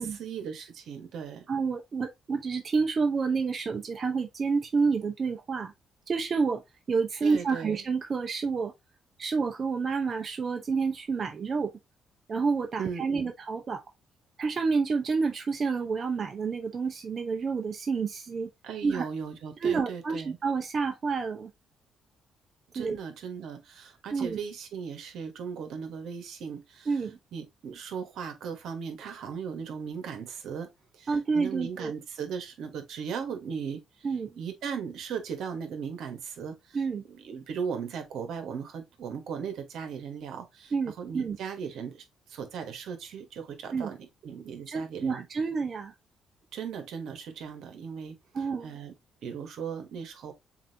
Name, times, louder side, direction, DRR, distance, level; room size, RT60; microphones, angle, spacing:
voice 1, 0.0-1.4 7.2-7.8 12.8-13.3 18.6-20.4 22.7-27.0 27.3-30.7 30.9-34.1 34.4-36.8 37.1-45.2 46.5-48.9 49.2-50.3, right 6 dB, 75° right, 1.2 m, -37 dB
voice 2, 1.5-5.7 6.1-6.6 6.9-8.7 9.2-11.7 12.3-13.8 14.4-18.5 18.8-19.1 19.6-21.5 22.7-23.0 24.1-24.4 26.9-27.2 31.1-31.9 34.0-34.3 36.7-37.0 40.7-41.4 43.7-43.9 44.7-45.9 48.3-48.7, right 5 dB, 45° right, 0.7 m, -29 dB
7.1 x 2.6 x 2.7 m
cardioid pair, 90°, 0 cm